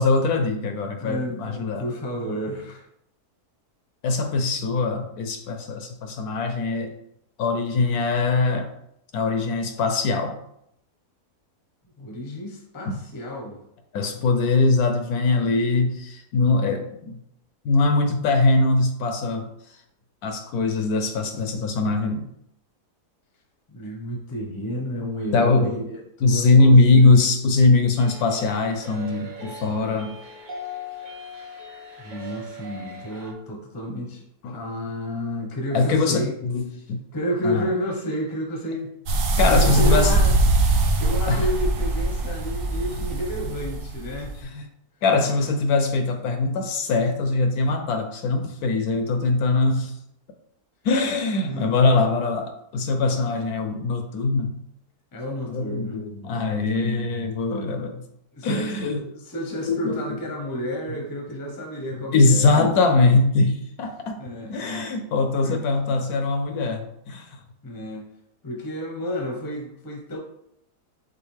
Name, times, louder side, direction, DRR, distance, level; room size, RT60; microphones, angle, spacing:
voice 1, 0.0-1.8 4.0-6.9 7.4-8.7 9.1-10.4 12.9-13.0 13.9-17.2 17.6-19.5 20.2-22.3 25.3-25.7 26.2-30.1 34.4-34.6 35.7-37.0 37.4-37.8 39.4-40.1 41.3-41.5 42.9-43.0 44.4-44.6 45.0-50.0 50.8-54.6 55.5-58.0 58.4-59.0 59.7-60.0 62.1-64.2 64.5-67.4, left 3 dB, 70° left, 6 dB, 1.0 m, -21 dB
voice 2, 1.0-2.9 12.0-13.6 23.7-27.3 32.0-34.2 34.5-36.3 36.7-36.8 37.1-40.3 41.0-44.3 51.4-51.7 52.9-53.4 55.1-56.0 56.3-57.0 58.3-62.5 64.2-64.5 65.4-65.6 67.6-68.0 68.4-70.2, equal, 20° left, 0 dB, 0.6 m, -31 dB
sound 1, 28.0-33.3, left 2 dB, 45° right, 0.6 m, -39 dB
sound 2, 39.1-44.4, right 2 dB, 65° right, 0.9 m, -22 dB
6.2 x 2.5 x 3.2 m, 0.75 s
omnidirectional pair, 1.8 m